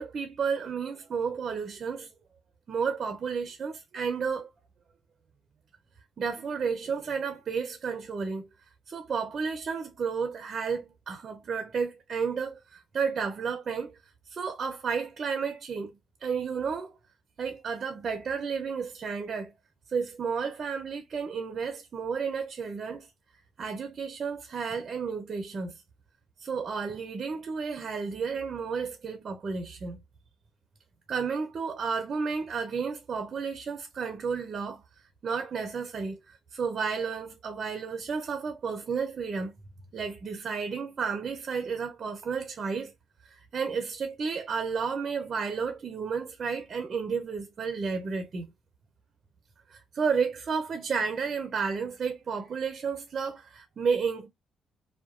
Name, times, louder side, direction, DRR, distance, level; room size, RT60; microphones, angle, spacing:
voice 1, 0.0-2.1 2.7-4.5 6.2-8.5 8.9-14.0 14.3-16.9 17.4-19.5 19.9-23.1 23.6-25.8 26.4-30.0 31.1-34.8 35.2-39.5 39.9-42.9 43.5-48.5 49.7-54.3, right 5 dB, 50° right, 0.6 m, -32 dB
2.8 x 2.2 x 2.4 m
cardioid pair, 90°, 0 cm